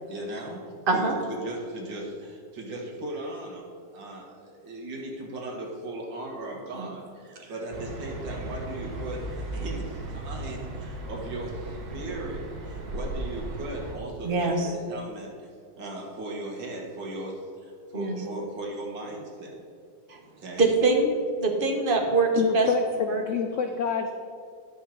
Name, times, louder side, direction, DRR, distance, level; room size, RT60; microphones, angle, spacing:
voice 1, 0.1-0.6 0.9-3.7 3.9-15.5 15.8-19.6 20.4-20.7 23.5-23.6, right 1 dB, 90° right, -1 dB, 2.3 m, -37 dB
sound 1, 7.7-13.9, right 2 dB, 60° right, 1.6 m, -36 dB
voice 2, 14.2-14.7 17.9-18.2 20.1-20.2 20.6-22.7 23.1-23.2, right 3 dB, 35° right, 2 dB, 1.1 m, -24 dB
voice 3, 22.4-24.1, left 6 dB, 85° left, 5 dB, 0.6 m, -27 dB
10.0 x 5.5 x 5.9 m, 2.3 s
omnidirectional pair, 2.0 m